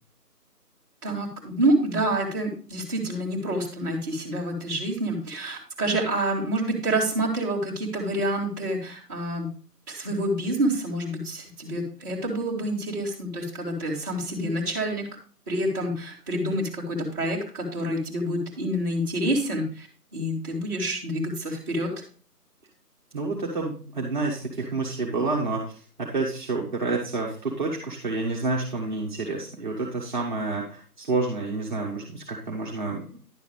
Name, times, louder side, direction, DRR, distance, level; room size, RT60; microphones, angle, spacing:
voice 1, 1.0-9.5 9.9-15.1 15.5-19.9 20.1-21.9, right 1 dB, 10° right, -7 dB, 1.6 m, -27 dB
voice 2, 23.1-33.1, right 3 dB, 30° right, -4 dB, 1.3 m, -29 dB
10.5 x 6.8 x 3.3 m, 0.40 s
figure-of-eight pair, 150°, 48 cm